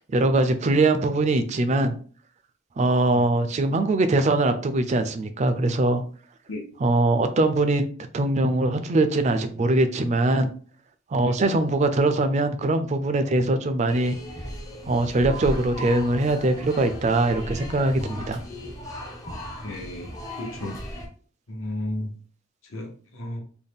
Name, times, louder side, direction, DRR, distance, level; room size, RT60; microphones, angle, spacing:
voice 1, 0.0-1.9 2.8-6.0 6.8-7.9 8.1-10.5 11.1-14.2 14.9-18.4, right 2 dB, 35° right, 9 dB, 0.3 m, -22 dB
sound 1, 13.9-21.1, equal, 15° left, 0.6 m, -36 dB
voice 2, 19.6-20.1 20.4-20.8 21.5-22.1 22.7-23.4, left 1 dB, 75° left, 2 dB, 1.0 m, -33 dB
4.0 x 2.2 x 3.4 m, 0.43 s
head